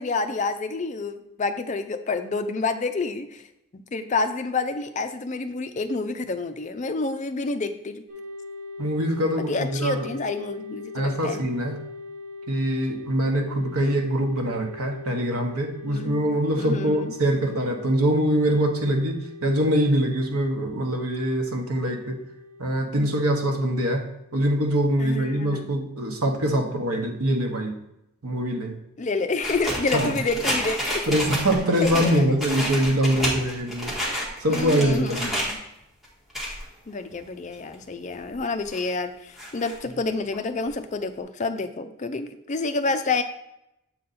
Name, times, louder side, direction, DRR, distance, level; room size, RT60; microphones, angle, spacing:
voice 1, 0.0-3.4 3.9-8.0 9.5-11.4 15.9-16.3 16.6-17.1 25.0-25.7 29.0-31.1 31.8-32.4 34.5-35.6 36.9-43.2, left 3 dB, 35° left, 9 dB, 0.4 m, -28 dB
sound 1, 8.1-25.5, left 3 dB, 35° right, 1.1 m, -42 dB
voice 2, 8.8-10.1 10.9-11.8 12.5-22.2 22.6-24.1 24.3-27.7 28.2-28.8 29.9-30.1 31.1-33.9 34.4-35.2, right 1 dB, 90° right, 3 dB, 1.1 m, -24 dB
sound 2, 29.4-35.5 36.0-36.6 37.1-37.2 37.6-37.7 38.3-38.9 39.4-39.7 40.3-40.4 40.7-40.8 41.0-41.1, equal, ahead, 1.6 m, -30 dB
7.6 x 4.0 x 4.1 m, 0.83 s
head